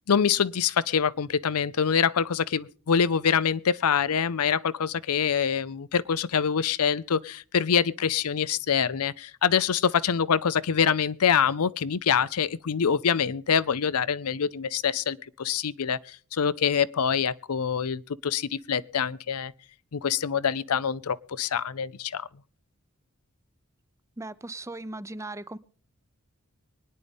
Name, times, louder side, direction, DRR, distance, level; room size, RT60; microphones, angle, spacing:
voice 1, 0.1-19.5 19.9-22.3, left 7 dB, 85° left, 0.6 m, -25 dB
voice 2, 24.2-25.6, right 2 dB, 15° right, 0.6 m, -38 dB
24.0 x 10.0 x 3.6 m
head